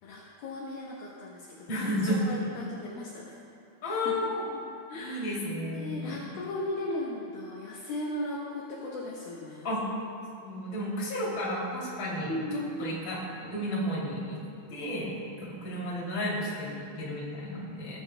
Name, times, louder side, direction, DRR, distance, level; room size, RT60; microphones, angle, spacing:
voice 1, 0.0-3.4 3.8-4.3 4.9-5.4 5.7-9.7 12.3-12.8, left 1 dB, 70° left, -4 dB, 2.5 m, -37 dB
voice 2, 1.7-2.4 3.8-4.5 4.9-6.3 9.6-9.8 10.3-14.4 14.7-15.1 15.4-18.0, equal, 35° left, -6 dB, 2.8 m, -32 dB
19.0 x 11.0 x 2.2 m, 2.5 s
omnidirectional pair, 5.0 m